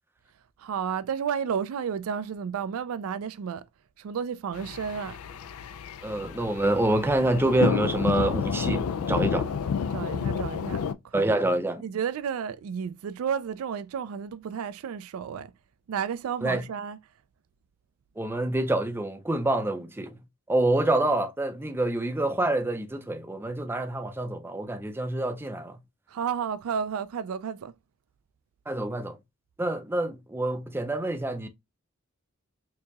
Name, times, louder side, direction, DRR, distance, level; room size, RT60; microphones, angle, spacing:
voice 1, 0.6-3.6 4.0-5.2 9.9-11.2 11.8-15.5 15.9-17.0 26.1-27.7, right 7 dB, 80° right, 0.3 m, -32 dB
sound 1, 4.5-10.9, left 6 dB, 85° left, 0.4 m, -30 dB
voice 2, 6.0-9.5 11.1-11.8 16.4-16.6 18.2-20.2 20.5-25.8 28.7-29.2 29.6-31.5, right 1 dB, 10° right, 0.4 m, -26 dB
4.5 x 2.8 x 2.3 m
head